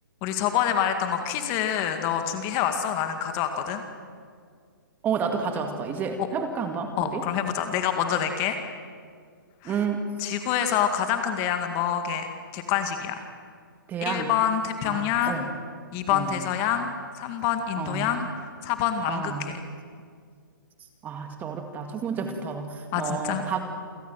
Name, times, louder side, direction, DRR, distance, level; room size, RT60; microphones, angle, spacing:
voice 1, 0.2-3.8 6.2-6.3 7.0-8.6 9.6-9.8 10.2-13.2 14.0-15.4 15.9-18.3 18.6-19.6 22.9-23.4, left 9 dB, 25° left, 7 dB, 2.1 m, -26 dB
voice 2, 5.0-7.2 9.6-10.0 13.9-14.3 14.8-15.5 16.1-16.4 17.8-18.1 19.1-19.5 21.0-23.6, right 6 dB, 15° right, 6 dB, 2.0 m, -30 dB
28.0 x 16.5 x 9.2 m, 2.1 s
hypercardioid pair, 155°, 12 cm